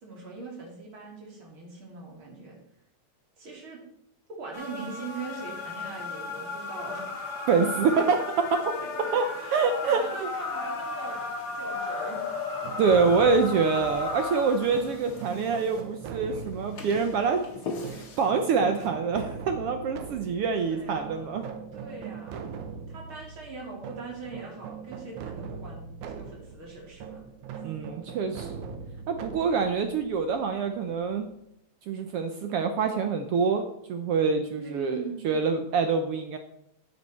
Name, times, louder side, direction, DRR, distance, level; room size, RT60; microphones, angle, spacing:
voice 1, 0.0-2.6 3.4-3.8 4.3-7.2 8.0-8.1 8.7-9.1 9.4-11.2 11.6-12.2 20.6-21.3 21.7-22.5 22.9-27.2 34.5-35.2, right 3 dB, 45° right, -2 dB, 3.4 m, -41 dB
sound 1, 4.5-15.8 16.5-18.2 18.8-18.9, left 3 dB, 45° left, 1.5 m, -35 dB
voice 2, 7.5-8.2 9.1-9.2 9.5-10.0 12.8-17.4 17.9-21.4 27.6-28.6 29.1-31.3 31.9-36.4, right 5 dB, 75° right, 6 dB, 1.4 m, -26 dB
sound 2, 12.6-31.3, right 6 dB, 90° right, 2.4 m, -41 dB
9.6 x 9.4 x 4.3 m, 0.76 s
omnidirectional pair, 3.4 m